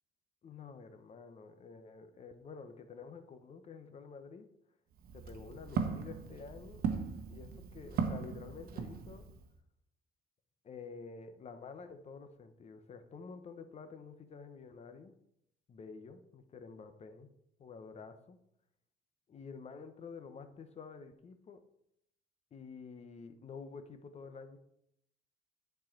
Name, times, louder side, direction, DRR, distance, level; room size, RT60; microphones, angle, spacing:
voice 1, 0.4-4.5 5.1-6.8 7.3-9.2 10.6-15.1 15.7-17.3 17.6-18.4 19.3-21.6 22.5-24.6, left 5 dB, 40° left, 9 dB, 1.0 m, -49 dB
Walk footsteps, 4.9-9.5, right 6 dB, 60° right, 1.1 m, -38 dB
10.0 x 4.7 x 4.6 m, 0.75 s
cardioid pair, 110°, 17 cm